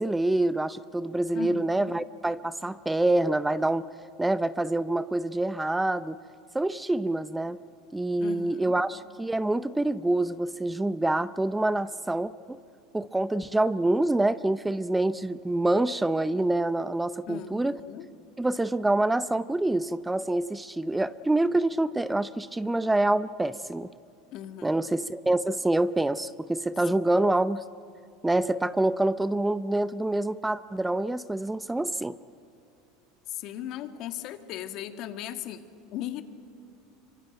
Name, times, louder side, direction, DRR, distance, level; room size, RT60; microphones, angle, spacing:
voice 1, 0.0-3.8 4.2-6.2 6.5-7.6 7.9-12.6 12.9-17.8 18.4-23.9 24.6-27.6 28.2-32.2, right 2 dB, 10° right, 15 dB, 0.6 m, -26 dB
voice 2, 1.3-2.0 8.2-8.8 17.3-18.1 24.3-24.8 26.9-27.2 33.3-35.6 35.9-36.2, left 11 dB, 55° left, 8 dB, 1.9 m, -38 dB
25.5 x 24.0 x 9.1 m, 2.6 s
hypercardioid pair, 90°, 0 cm